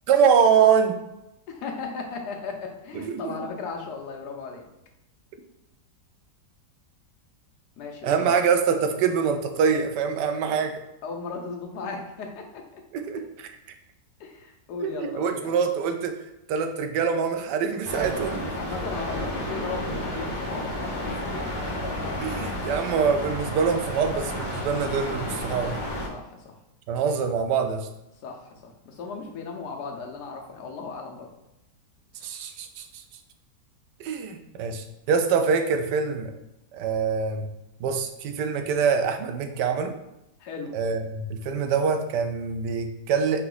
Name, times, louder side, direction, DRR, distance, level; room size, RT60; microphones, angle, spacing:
voice 1, 0.1-1.0 2.9-3.3 8.0-10.8 12.9-13.5 14.8-16.1 16.5-18.5 22.2-25.8 26.9-27.9 32.2-32.9 34.0-36.3 36.7-37.5 37.8-39.9 40.7-43.5, right 6 dB, 85° right, 6 dB, 1.2 m, -24 dB
voice 2, 1.5-4.7 7.8-8.4 11.0-12.8 14.2-15.5 18.6-21.7 26.1-26.5 28.2-31.3 40.4-40.7, left 4 dB, 75° left, 2 dB, 1.3 m, -36 dB
sound 1, 17.8-26.1, left 1 dB, 25° left, 0.5 m, -31 dB
4.1 x 2.8 x 3.8 m, 0.90 s
omnidirectional pair, 1.8 m